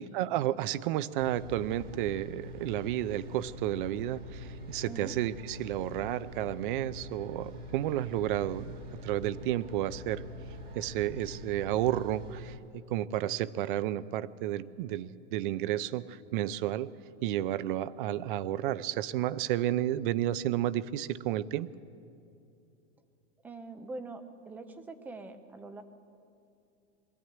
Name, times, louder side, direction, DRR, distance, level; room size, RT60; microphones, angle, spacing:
voice 1, 0.0-8.7 9.0-10.2 10.7-16.9 17.2-21.7, right 13 dB, 45° right, 18 dB, 0.6 m, -32 dB
sound 1, 1.2-12.6, left 1 dB, 25° right, 1.6 m, -44 dB
voice 2, 4.8-5.1 23.4-25.8, right 3 dB, 5° right, 9 dB, 0.4 m, -43 dB
22.0 x 14.0 x 9.3 m, 2.6 s
supercardioid pair, 160°, 36 cm